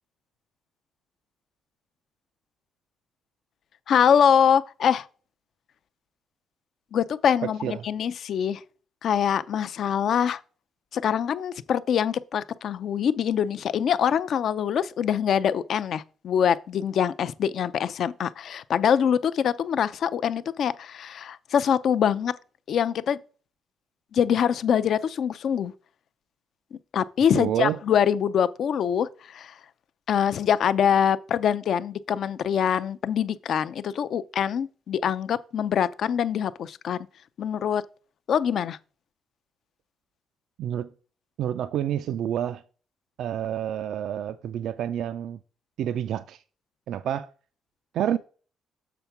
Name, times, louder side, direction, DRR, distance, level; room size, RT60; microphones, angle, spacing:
voice 1, 3.9-5.1 6.9-8.6 9.0-10.4 10.9-22.3 22.7-23.2 24.1-25.7 26.7-29.6 30.1-37.1 37.4-37.8 38.3-38.8, left 8 dB, 65° left, 0.4 m, -24 dB
voice 2, 7.4-7.8 27.3-27.8 40.6-40.9 41.4-42.6 43.2-45.4 45.8-46.4 46.9-47.3 47.9-48.2, right 10 dB, 75° right, 0.3 m, -28 dB
6.9 x 3.5 x 5.8 m
cardioid pair, 90°, 0 cm